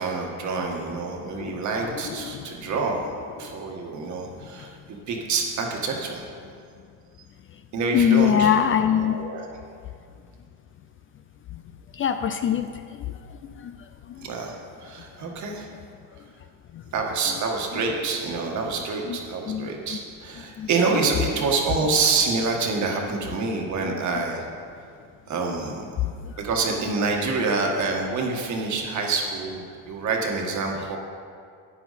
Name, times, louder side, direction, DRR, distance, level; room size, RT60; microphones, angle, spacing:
voice 1, 0.0-3.1 3.4-6.3 7.7-8.5 9.0-9.6 14.2-15.7 16.9-24.5 25.3-25.8 26.4-31.0, right 4 dB, 50° right, 1 dB, 1.6 m, -27 dB
voice 2, 1.4-2.4 7.9-9.2 12.0-12.7 13.6-13.7 19.1-19.2 19.5-19.7 20.6-20.7, left 9 dB, 35° left, 9 dB, 0.4 m, -22 dB
11.5 x 8.9 x 4.1 m, 2.2 s
cardioid pair, 130°, 36 cm